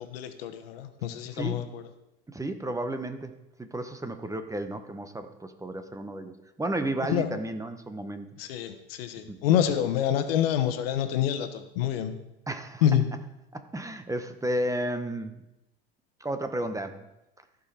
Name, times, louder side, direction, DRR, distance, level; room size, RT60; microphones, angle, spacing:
voice 1, 0.1-1.8 7.1-7.3 8.4-12.1 12.8-13.0, left 10 dB, 80° left, 9 dB, 1.1 m, -27 dB
voice 2, 1.3-1.6 2.3-8.3 9.3-9.4 12.5-12.9 13.5-15.4 16.2-17.1, right 1 dB, 10° right, 8 dB, 1.0 m, -33 dB
14.5 x 5.4 x 4.3 m, 0.90 s
hypercardioid pair, 85°, 29 cm